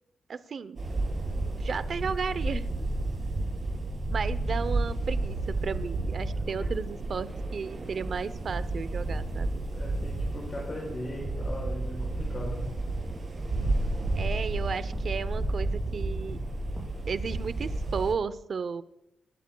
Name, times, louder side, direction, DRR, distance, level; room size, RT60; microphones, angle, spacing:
voice 1, 0.3-0.8 1.5-2.7 4.1-9.6 14.1-16.4 17.1-18.8, right 5 dB, 60° right, 15 dB, 0.7 m, -34 dB
sound 1, 0.8-18.1, right 2 dB, 40° right, 3.7 m, -31 dB
voice 2, 9.7-12.7, left 1 dB, 35° left, -5 dB, 5.6 m, -38 dB
sound 2, 13.1-17.0 17.3-17.6, equal, 10° right, 5.4 m, -43 dB
28.5 x 13.0 x 2.3 m, 0.86 s
cardioid pair, 105°, 0 cm